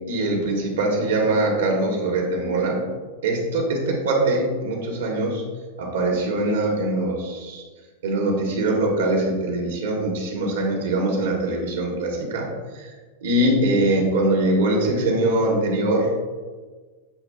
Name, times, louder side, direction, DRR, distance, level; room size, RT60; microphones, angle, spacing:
voice 1, 0.1-2.8 3.2-5.4 5.8-7.6 8.0-12.5 12.7-12.9 13.2-16.1, right 2 dB, 80° right, 0 dB, 1.3 m, -22 dB
8.0 x 2.8 x 2.4 m, 1.4 s
hypercardioid pair, 120°, 0 cm